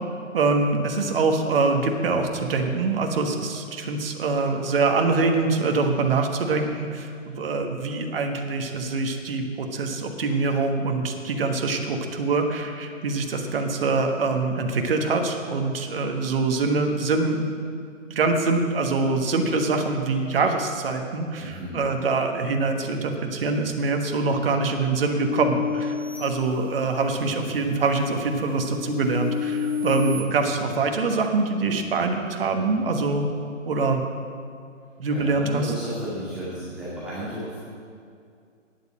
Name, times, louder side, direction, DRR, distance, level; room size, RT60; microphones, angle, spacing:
voice 1, 0.3-17.5 18.1-33.3 33.7-34.0 35.0-35.7, right 3 dB, 45° right, 4 dB, 1.3 m, -24 dB
voice 2, 21.4-21.8 35.1-37.6, right 1 dB, ahead, -13 dB, 2.1 m, -33 dB
sound 1, 25.2-27.1 27.7-30.2, left 6 dB, 50° left, 2.2 m, -31 dB
9.8 x 8.2 x 8.6 m, 2.3 s
figure-of-eight pair, 150°, 39 cm